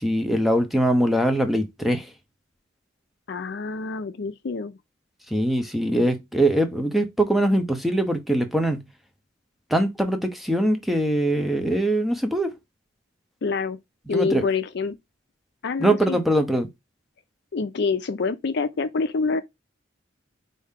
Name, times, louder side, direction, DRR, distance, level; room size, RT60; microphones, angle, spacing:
voice 1, 0.0-2.1 5.3-8.9 9.7-12.5 14.1-14.4 15.8-16.7, right 1 dB, ahead, 0.6 m, -22 dB
voice 2, 3.3-4.8 13.4-13.8 14.1-14.9 15.6-16.2 17.5-19.4, left 4 dB, 60° left, 0.5 m, -26 dB
4.5 x 2.7 x 3.6 m
head